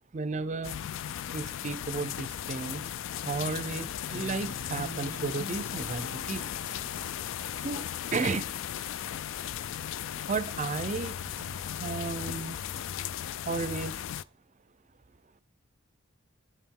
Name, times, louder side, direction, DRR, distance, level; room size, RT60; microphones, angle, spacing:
voice 1, 0.1-0.8 1.3-2.9 3.2-6.5 7.6-7.8 8.1-8.5 10.3-12.6 13.4-14.0, right 4 dB, 35° right, 0.5 m, -33 dB
sound 1, 0.6-14.2, left 10 dB, 60° left, 0.3 m, -36 dB
Guitar, 4.1-7.4, equal, 90° left, 1.0 m, -45 dB
8.3 x 7.2 x 3.7 m
head